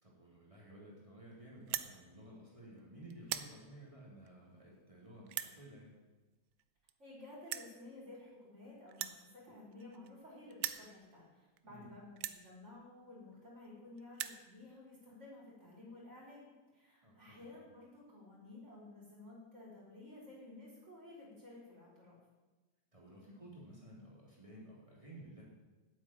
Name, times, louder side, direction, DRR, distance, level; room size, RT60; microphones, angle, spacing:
voice 1, 0.0-5.9 11.6-12.0 17.0-17.6 22.9-25.4, right 1 dB, 15° right, -5 dB, 3.5 m, -54 dB
sound 1, 1.6-1.9 2.6-2.8 3.1-3.5 4.3-4.4 5.3-5.5 6.6-6.7 6.9-7.0 7.5-7.7 8.9-10.2 10.5-10.9 11.6-11.7 12.2-12.4 13.3-13.4 13.6-13.7 14.0-14.4, right 11 dB, 70° right, 1.1 m, -40 dB
voice 2, 7.0-22.2, left 2 dB, 35° right, -6 dB, 4.5 m, -54 dB
8.6 x 8.5 x 8.9 m, 1.2 s
omnidirectional pair, 2.2 m